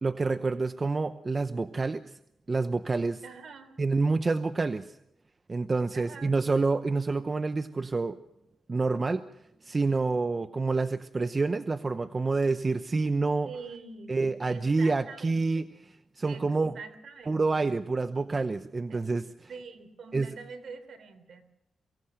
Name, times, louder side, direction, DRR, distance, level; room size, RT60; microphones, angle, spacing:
voice 1, 0.0-2.0 2.5-3.2 3.8-5.0 5.5-8.2 8.7-9.2 9.6-13.5 14.1-16.8 17.3-19.5 20.1-20.3, right 3 dB, 30° right, 10 dB, 0.8 m, -28 dB
voice 2, 3.2-3.8 5.9-6.3 13.5-15.7 16.2-16.5 16.7-17.4 18.9-19.0 19.5-21.4, right 4 dB, 65° right, 9 dB, 3.5 m, -45 dB
23.5 x 17.0 x 6.5 m, 0.81 s
cardioid pair, 90°, 0 cm